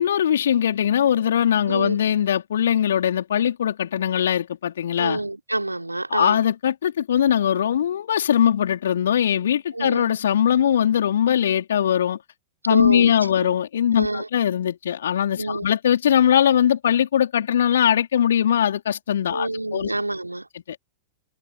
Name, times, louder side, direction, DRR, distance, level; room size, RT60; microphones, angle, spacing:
voice 1, 0.0-5.2 6.1-12.2 12.7-19.9 20.7-20.8, left 9 dB, 65° left, 3.9 m, -21 dB
voice 2, 1.7-2.0 5.0-6.4 9.7-10.1 12.7-13.1 13.4-13.5 13.9-14.3 15.4-15.7 19.3-20.5, right 2 dB, 85° right, 3.5 m, -27 dB
figure-of-eight pair, 90°, 0 cm